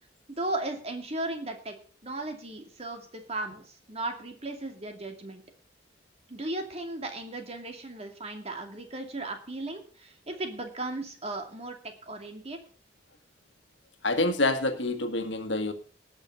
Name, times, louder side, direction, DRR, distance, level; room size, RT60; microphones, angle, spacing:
voice 1, 0.3-1.8 2.0-5.4 6.3-12.6, right 2 dB, 35° right, 2.5 m, -36 dB
voice 2, 14.0-15.7, left 2 dB, 90° left, 1.6 m, -27 dB
18.5 x 6.3 x 5.5 m
head